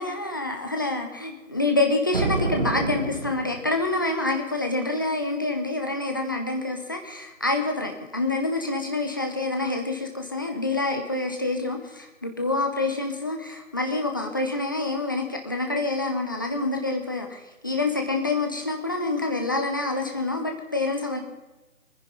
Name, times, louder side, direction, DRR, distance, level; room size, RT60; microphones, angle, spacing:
voice 1, 0.0-21.2, left 2 dB, 15° left, 3 dB, 0.9 m, -27 dB
sound 1, 2.1-3.9, right 3 dB, 40° right, 2.1 m, -28 dB
22.0 x 10.0 x 5.4 m, 1.1 s
figure-of-eight pair, 155°, 40 cm